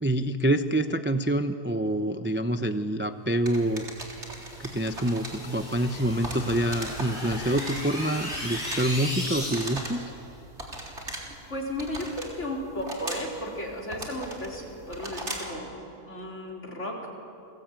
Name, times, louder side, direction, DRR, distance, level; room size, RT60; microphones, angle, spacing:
voice 1, 0.0-3.8 4.6-10.0, right 1 dB, 10° right, 8 dB, 0.5 m, -26 dB
sound 1, 3.5-15.6, right 1 dB, 45° right, 4.0 m, -40 dB
sound 2, 4.1-10.0, left 1 dB, 30° left, 6.6 m, -37 dB
voice 2, 11.5-15.7 16.1-17.1, left 1 dB, 50° left, -1 dB, 4.7 m, -34 dB
30.0 x 21.5 x 9.1 m, 2.7 s
omnidirectional pair, 1.6 m